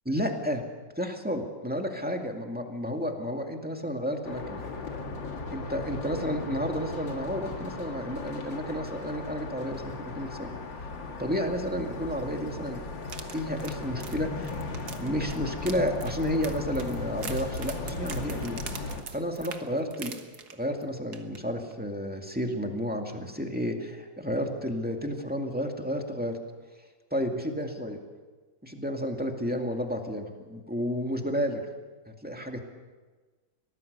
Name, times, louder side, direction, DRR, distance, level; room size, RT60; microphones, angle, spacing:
voice 1, 0.1-0.6 1.0-4.6 5.5-10.5 11.2-12.8 13.3-14.5 15.0-18.8 19.1-20.2 20.5-26.4 27.1-28.0 28.6-31.6 32.1-32.6, equal, 5° right, 2 dB, 2.0 m, -31 dB
sound 1, 4.2-19.0, left 3 dB, 75° left, 2.7 m, -37 dB
sound 2, 13.0-20.8 21.1-21.4 21.7-21.8, right 6 dB, 55° right, 1.8 m, -43 dB
24.0 x 18.0 x 6.8 m, 1.3 s
omnidirectional pair, 2.1 m